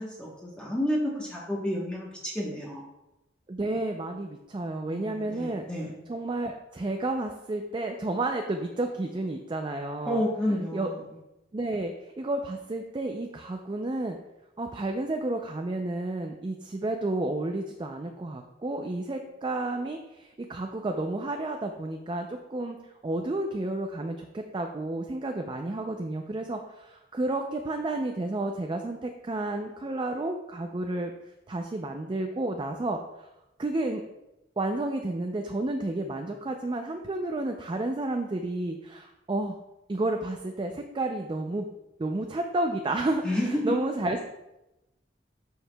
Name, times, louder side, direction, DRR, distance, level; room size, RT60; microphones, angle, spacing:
voice 1, 0.0-2.8 4.9-6.0 10.1-11.0 43.2-43.8, equal, 5° left, -5 dB, 1.0 m, -30 dB
voice 2, 3.5-5.6 6.1-10.2 10.5-10.9 11.5-14.2 14.6-22.8 23.0-31.1 31.5-33.3 33.6-34.0 34.6-39.6 39.9-41.7 42.0-44.2, right 2 dB, 25° right, 4 dB, 0.4 m, -31 dB
12.0 x 4.7 x 2.2 m, 0.94 s
head